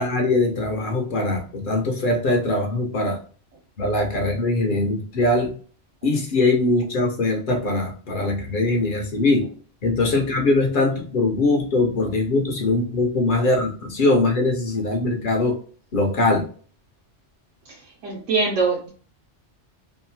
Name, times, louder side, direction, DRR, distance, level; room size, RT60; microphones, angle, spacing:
voice 1, 0.0-3.2 3.8-5.5 6.0-9.4 9.8-15.5 15.9-16.4, left 2 dB, 60° left, 2 dB, 0.5 m, -21 dB
voice 2, 17.7-18.9, right 4 dB, 90° right, -3 dB, 1.0 m, -24 dB
2.8 x 2.3 x 2.6 m, 0.42 s
omnidirectional pair, 1.2 m